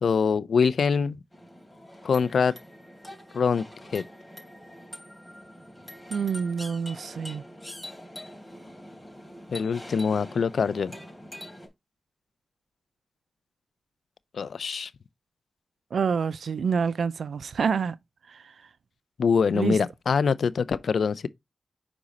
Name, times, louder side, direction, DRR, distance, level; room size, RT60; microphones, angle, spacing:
voice 1, 0.0-1.2 2.0-2.5 3.3-3.6 3.9-4.0 9.5-10.9 14.3-14.9 19.2-21.3, left 6 dB, 80° left, 0.4 m, -24 dB
sound 1, 1.3-11.7, left 1 dB, 5° left, 3.2 m, -44 dB
voice 2, 6.1-7.4 15.9-18.0 18.3-18.5 19.5-19.8, right 6 dB, 85° right, 0.4 m, -27 dB
6.1 x 4.9 x 4.1 m
cardioid pair, 55°, 0 cm